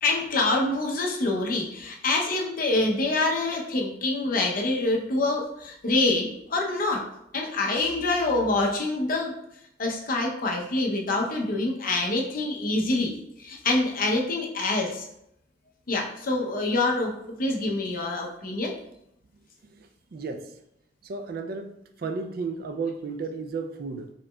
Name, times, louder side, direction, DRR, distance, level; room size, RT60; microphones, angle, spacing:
voice 1, 0.0-7.0 7.3-9.3 9.8-15.0 15.9-17.1 17.4-18.7, left 2 dB, 55° left, 0 dB, 0.7 m, -26 dB
voice 2, 19.7-20.5 21.0-24.1, right 4 dB, 55° right, 7 dB, 0.4 m, -34 dB
4.8 x 3.0 x 2.2 m, 0.78 s
head